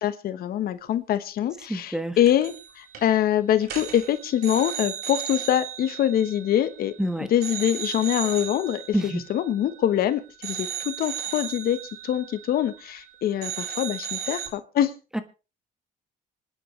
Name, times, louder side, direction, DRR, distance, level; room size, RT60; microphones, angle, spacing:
voice 1, 0.0-6.9 7.3-14.9, left 11 dB, 65° left, 12 dB, 1.1 m, -24 dB
voice 2, 1.7-2.2 7.0-7.3 8.9-9.2 15.1-15.2, right 1 dB, 5° right, 10 dB, 1.4 m, -27 dB
sound 1, 2.3-2.7 2.9-3.2 3.6-7.0 7.4-10.0 10.4-13.1 13.4-14.5, right 9 dB, 70° right, 4.0 m, -35 dB
25.5 x 10.0 x 3.2 m, 0.32 s
cardioid pair, 110°, 17 cm